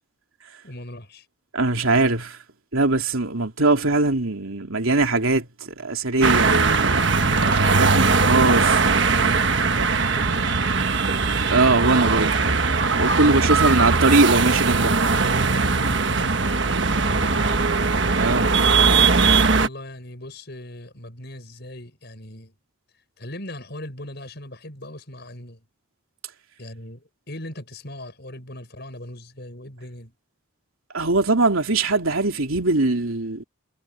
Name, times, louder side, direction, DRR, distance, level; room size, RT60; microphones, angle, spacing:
voice 1, 0.6-1.2 7.2-11.1 13.2-14.0 15.7-16.4 16.8-17.8 19.2-22.5 23.2-25.6 26.6-30.1, left 1 dB, 50° left, 6.6 m, -39 dB
voice 2, 1.5-2.4 2.7-5.5 5.8-7.1 7.7-8.6 11.5-12.3 13.0-15.0 18.2-18.5 30.9-33.4, right 2 dB, 80° right, 3.1 m, -21 dB
sound 1, 6.2-19.7, right 4 dB, 55° right, 1.4 m, -20 dB
head